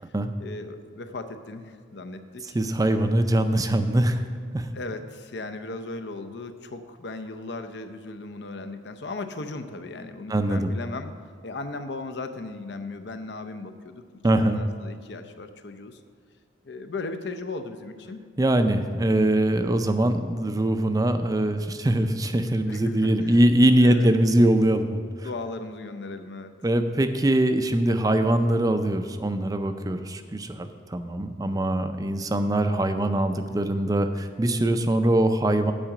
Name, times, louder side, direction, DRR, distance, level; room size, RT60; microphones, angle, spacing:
voice 1, 0.4-2.6 4.7-11.1 11.4-16.0 16.6-18.2 19.6-19.8 22.7-23.4 23.8-24.1 25.2-26.5, left 3 dB, 60° left, 8 dB, 0.6 m, -37 dB
voice 2, 2.5-4.2 4.5-4.7 10.3-10.7 14.2-14.6 18.4-25.0 26.6-35.7, right 1 dB, 20° right, 8 dB, 0.4 m, -22 dB
8.8 x 4.9 x 7.6 m, 2.1 s
head